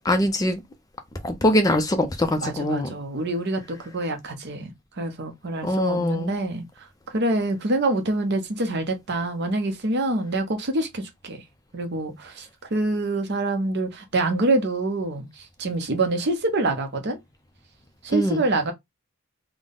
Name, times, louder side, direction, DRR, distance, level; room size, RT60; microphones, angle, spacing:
voice 1, 0.0-0.6 1.2-2.9 5.6-6.3 18.1-18.4, left 1 dB, 15° left, 0.4 m, -22 dB
voice 2, 2.4-4.7 5.0-6.6 7.1-11.4 11.7-12.5 12.7-15.3 15.6-17.2 18.0-18.7, right 2 dB, 50° right, 0.7 m, -26 dB
3.6 x 2.1 x 3.6 m
head